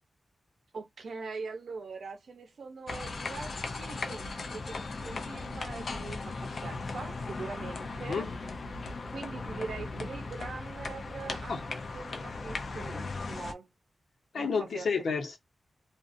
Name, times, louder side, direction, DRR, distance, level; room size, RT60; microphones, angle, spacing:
voice 1, 0.7-8.3 9.1-13.7 14.3-14.9, right 4 dB, 70° right, 0.7 m, -42 dB
sound 1, 2.9-13.5, left 3 dB, 50° left, 0.5 m, -38 dB
voice 2, 14.3-15.4, left 5 dB, 80° left, 0.9 m, -30 dB
2.5 x 2.4 x 2.5 m
wide cardioid pair, 175°, 0 cm